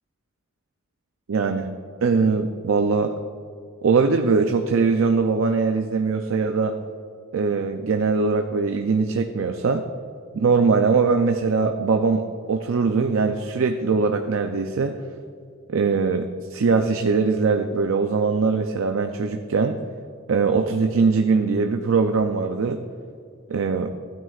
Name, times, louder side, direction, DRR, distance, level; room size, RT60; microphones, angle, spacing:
voice 1, 1.3-1.7 2.0-3.1 3.8-6.7 7.3-9.8 10.3-12.2 12.5-15.0 15.7-19.8 20.3-22.8 23.5-23.9, right 4 dB, 65° right, 5 dB, 0.5 m, -21 dB
15.5 x 9.2 x 2.4 m, 2.4 s
head